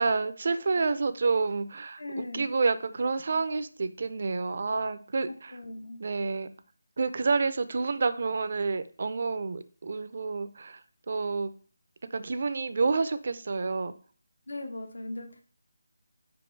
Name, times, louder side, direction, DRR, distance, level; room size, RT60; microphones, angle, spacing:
voice 1, 0.0-5.6 6.0-6.5 7.0-11.5 12.1-13.9, right 4 dB, 40° right, 12 dB, 0.4 m, -29 dB
voice 2, 2.0-2.5 5.2-6.0 14.5-15.4, left 2 dB, 80° left, 4 dB, 1.2 m, -38 dB
5.2 x 4.9 x 4.5 m, 0.42 s
figure-of-eight pair, 175°, 0 cm